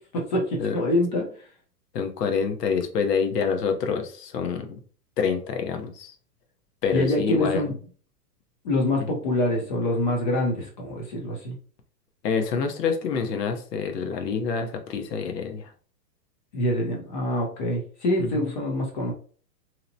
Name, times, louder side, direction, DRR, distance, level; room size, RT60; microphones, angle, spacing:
voice 1, 0.1-1.5 6.9-7.7 8.6-11.6 16.5-19.1, left 1 dB, 30° left, 0 dB, 0.5 m, -25 dB
voice 2, 1.9-4.8 5.2-6.1 6.8-7.7 12.2-15.7 18.2-18.5, left 6 dB, 75° left, 5 dB, 0.7 m, -27 dB
2.8 x 2.0 x 2.5 m, 0.42 s
hypercardioid pair, 155°, 49 cm